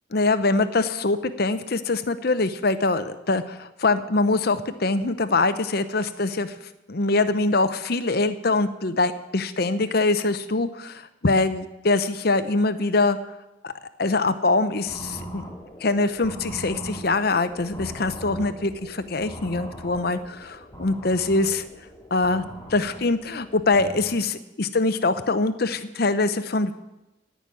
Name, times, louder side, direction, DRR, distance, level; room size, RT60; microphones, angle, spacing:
voice 1, 0.1-6.5 6.9-13.2 13.6-13.7 14.0-15.4 15.8-21.6 22.1-22.4 22.7-26.7, left 3 dB, 50° left, 11 dB, 0.8 m, -23 dB
sound 1, 14.9-24.2, right 1 dB, 15° left, 2.3 m, -40 dB
16.5 x 6.2 x 9.8 m, 0.97 s
head